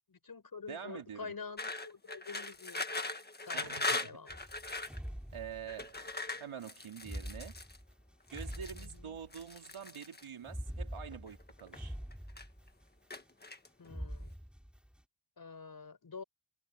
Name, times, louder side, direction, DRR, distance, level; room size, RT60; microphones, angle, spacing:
voice 1, 0.1-2.8 3.4-3.7 4.0-4.3 8.7-9.2 13.8-14.3 15.4-16.2, left 5 dB, 45° left, 5.5 m, -47 dB
voice 2, 0.7-1.3 3.5-4.2 5.3-6.0 6.4-7.5 8.3-11.9, right 8 dB, 80° right, 2.9 m, -46 dB
sound 1, 1.6-5.0 5.7-7.8 8.3-8.9 9.3-10.2 11.1-11.8 12.1-12.7 13.1-13.9, left 2 dB, 20° left, 1.6 m, -40 dB
sound 2, 4.3-6.0 7.0-9.6 10.4-13.0 13.8-15.0, equal, ahead, 5.5 m, -45 dB
wide cardioid pair, 145°, 48 cm